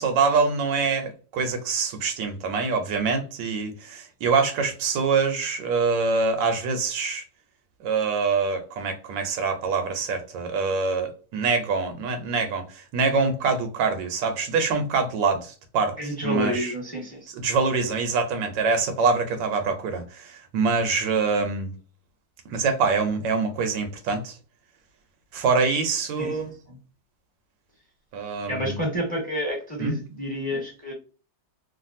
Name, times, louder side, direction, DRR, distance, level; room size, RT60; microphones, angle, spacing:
voice 1, 0.0-7.2 7.8-16.7 17.4-21.7 22.5-24.3 25.3-26.5 28.1-28.8 29.8-29.9, right 4 dB, 80° right, 1.4 m, -25 dB
voice 2, 16.0-17.3 26.2-26.4 26.7-26.8 28.5-30.9, equal, 5° left, 1.0 m, -29 dB
3.2 x 2.4 x 2.5 m
omnidirectional pair, 2.0 m